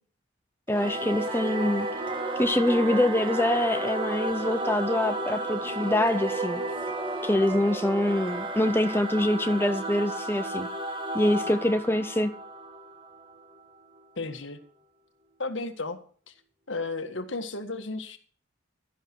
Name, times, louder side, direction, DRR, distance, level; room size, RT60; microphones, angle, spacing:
voice 1, 0.7-1.9 2.4-6.6 7.2-10.7 11.1-12.3, left 1 dB, 10° left, 8 dB, 0.7 m, -25 dB
Singing / Musical instrument, 0.7-13.6, right 2 dB, 25° right, 2.1 m, -32 dB
voice 2, 14.2-14.6 15.4-16.0 16.3-16.4 16.7-18.2, left 3 dB, 70° left, 9 dB, 1.7 m, -33 dB
13.0 x 11.5 x 4.7 m, 0.43 s
head